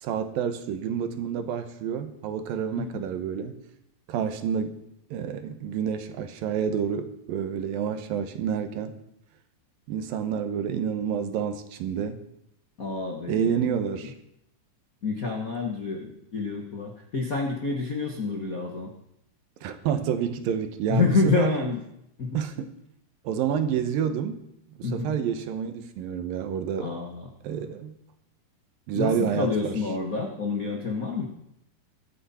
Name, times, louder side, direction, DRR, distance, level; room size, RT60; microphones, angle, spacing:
voice 1, 0.0-3.6 4.1-4.8 5.1-8.9 9.9-12.2 13.3-14.1 19.6-21.6 22.3-22.7 23.2-24.4 24.8-26.9 27.4-28.0 28.9-29.8, right 8 dB, 75° right, 9 dB, 2.7 m, -29 dB
voice 2, 12.8-13.7 14.0-14.1 15.0-18.9 20.9-21.8 22.2-22.4 24.8-25.1 26.8-27.3 28.9-31.3, left 4 dB, 80° left, 1 dB, 0.7 m, -28 dB
23.5 x 9.3 x 4.3 m, 0.78 s
omnidirectional pair, 4.2 m